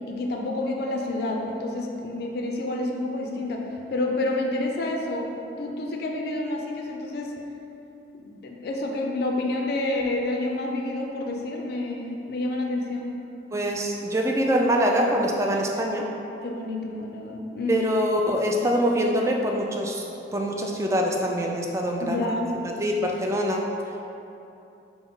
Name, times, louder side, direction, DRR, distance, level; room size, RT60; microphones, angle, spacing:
voice 1, 0.1-3.6 3.9-5.3 5.6-7.3 8.1-13.1 16.4-17.9 22.0-22.5, left 2 dB, 60° left, 1 dB, 0.4 m, -29 dB
voice 2, 13.5-16.1 17.7-20.0 20.3-22.3 22.8-23.6, equal, 15° right, 0 dB, 0.3 m, -24 dB
5.8 x 2.0 x 3.7 m, 2.8 s
head